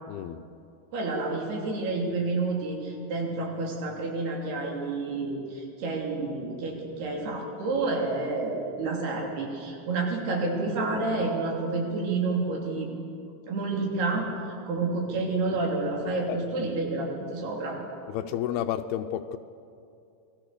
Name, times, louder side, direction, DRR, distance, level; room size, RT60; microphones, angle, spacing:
voice 1, 0.1-0.4 16.3-16.4 18.1-19.4, left 11 dB, 85° left, 6 dB, 2.7 m, -31 dB
voice 2, 0.9-12.9 13.5-14.3 14.7-17.8, right 3 dB, 85° right, 0 dB, 5.2 m, -29 dB
28.0 x 20.5 x 6.7 m, 2.5 s
omnidirectional pair, 4.4 m